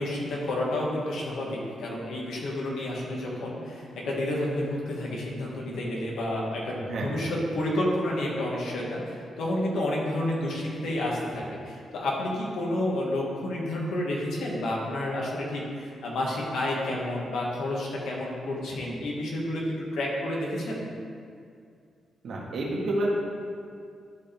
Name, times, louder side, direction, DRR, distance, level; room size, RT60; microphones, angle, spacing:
voice 1, 0.0-20.9, left 1 dB, 85° left, -3 dB, 1.8 m, -30 dB
voice 2, 6.9-7.3 22.2-23.2, right 1 dB, 70° right, -3 dB, 1.7 m, -29 dB
12.5 x 5.1 x 3.5 m, 2.3 s
cardioid pair, 90°, 0 cm